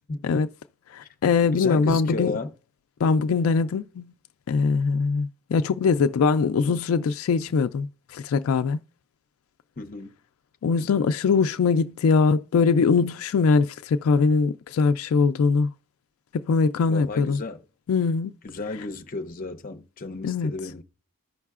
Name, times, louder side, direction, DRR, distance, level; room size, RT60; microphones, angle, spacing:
voice 1, 0.9-2.4 3.0-4.1 4.5-8.8 10.6-15.7 16.3-17.4 17.9-18.3 20.2-20.5, left 5 dB, 80° left, 0.3 m, -22 dB
voice 2, 1.5-2.5 9.8-10.1 16.9-17.6 18.4-20.8, left 3 dB, 40° left, 0.6 m, -33 dB
14.5 x 5.5 x 2.4 m
head